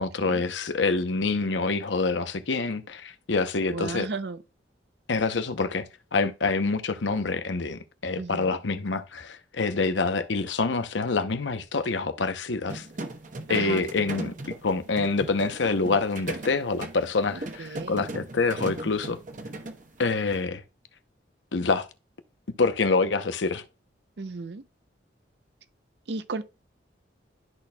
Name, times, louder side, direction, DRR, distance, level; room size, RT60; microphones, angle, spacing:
voice 1, 0.0-4.1 5.1-5.9 6.1-12.9 13.5-19.2 20.0-20.6 21.5-21.9 22.6-23.6, left 3 dB, 90° left, 0.8 m, -26 dB
voice 2, 3.7-4.4 8.2-8.6 13.5-13.9 17.3-18.1 24.2-24.6 26.1-26.4, right 3 dB, 65° right, 0.6 m, -35 dB
sound 1, 12.7-20.4, right 2 dB, 45° right, 1.0 m, -38 dB
12.5 x 4.2 x 2.3 m
head